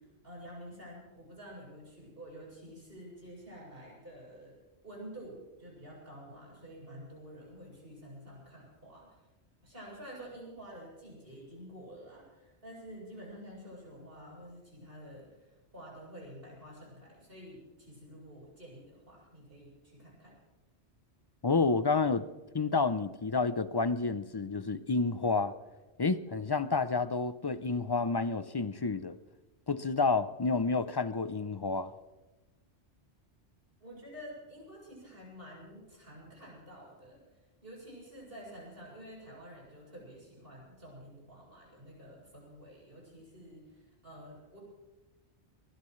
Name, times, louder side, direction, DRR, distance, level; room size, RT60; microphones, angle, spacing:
voice 1, 0.0-4.6 4.8-9.2 9.6-20.4 33.8-37.2 37.6-44.6, equal, 55° right, -4 dB, 7.7 m, -49 dB
voice 2, 21.4-22.2 22.5-25.5 26.0-29.2 29.7-31.9, left 4 dB, 35° left, 13 dB, 0.4 m, -29 dB
22.5 x 20.0 x 3.2 m, 1.1 s
omnidirectional pair, 1.1 m